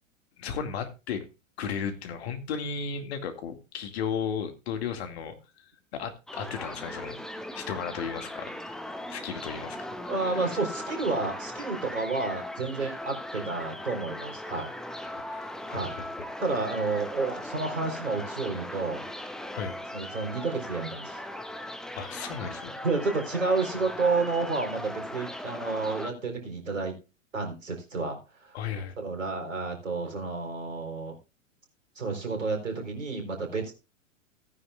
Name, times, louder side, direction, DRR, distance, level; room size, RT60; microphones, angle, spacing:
voice 1, 0.4-1.3 1.6-7.2 7.5-8.8 9.1-10.0 10.3-10.5 15.2-16.1 19.5-19.8 22.0-22.7 28.5-28.9, left 7 dB, 55° left, 2.3 m, -35 dB
sound 1, 6.3-26.1, left 1 dB, ahead, 0.8 m, -39 dB
voice 2, 10.1-14.7 15.7-16.0 16.4-19.0 19.9-21.2 22.8-26.9 27.3-28.6 29.0-31.1 32.0-33.7, right 3 dB, 75° right, 4.2 m, -30 dB
17.0 x 9.7 x 2.4 m
figure-of-eight pair, 100°, 39 cm